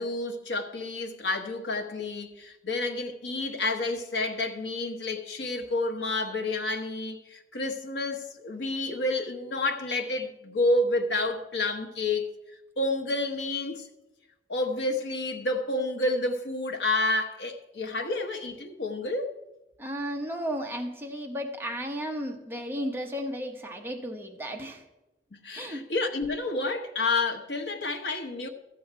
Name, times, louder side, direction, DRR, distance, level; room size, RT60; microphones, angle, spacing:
voice 1, 0.0-12.3 12.8-13.9 14.5-19.3 25.4-28.5, left 2 dB, 85° left, 1.1 m, -29 dB
voice 2, 19.8-24.8 25.5-25.8, equal, 10° right, 1.0 m, -34 dB
13.5 x 7.8 x 4.5 m
head